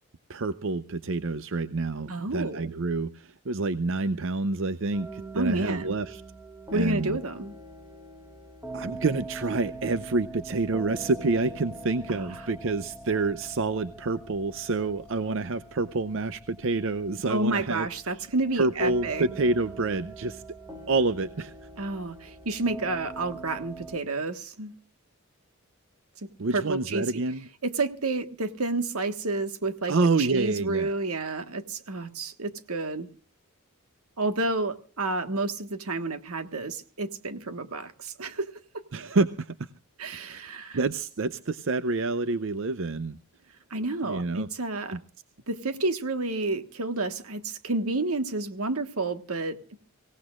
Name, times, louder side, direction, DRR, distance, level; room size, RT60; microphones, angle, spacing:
voice 1, 0.3-6.2 6.7-7.2 8.7-18.3 18.6-20.4 20.9-21.5 26.4-27.4 29.9-30.9 38.9-39.7 40.1-40.4 40.7-43.2 44.0-44.5 44.9-45.0, right 3 dB, 60° right, 13 dB, 0.6 m, -28 dB
voice 2, 2.1-2.7 5.3-6.0 6.7-7.5 12.1-12.3 17.3-19.3 21.8-24.7 26.5-27.0 27.6-33.1 34.2-38.5 38.7-38.8 40.0-40.8 43.7-45.0 45.5-49.6, right 2 dB, 80° right, 9 dB, 1.5 m, -30 dB
sound 1, 4.9-24.0, right 2 dB, 10° right, 1.8 m, -43 dB
25.0 x 17.0 x 2.4 m, 0.38 s
head